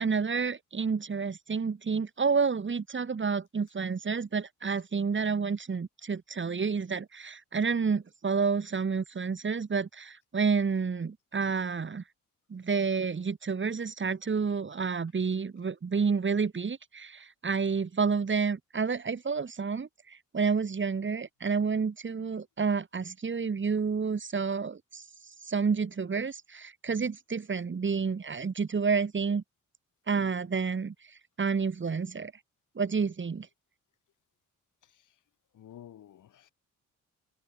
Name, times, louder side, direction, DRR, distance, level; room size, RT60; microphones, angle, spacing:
voice 1, 0.0-12.0 12.5-25.0 25.4-29.4 30.1-32.3 32.7-33.5, right 5 dB, 40° right, 3.1 m, -30 dB
voice 2, 34.8-35.2 35.5-36.5, left 11 dB, 75° left, 7.6 m, -52 dB
cardioid pair, 75°, 31 cm